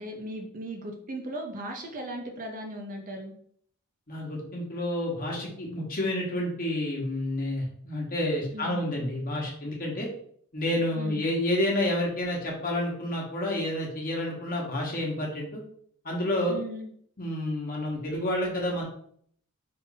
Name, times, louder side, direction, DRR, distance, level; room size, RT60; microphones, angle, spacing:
voice 1, 0.0-3.3 8.5-8.9 11.0-11.3 16.5-16.9, right 1 dB, 40° right, 2 dB, 0.6 m, -37 dB
voice 2, 4.1-10.1 10.5-15.6 16.0-16.6 17.2-18.8, left 1 dB, 40° left, -2 dB, 1.2 m, -29 dB
3.8 x 2.5 x 4.0 m, 0.63 s
head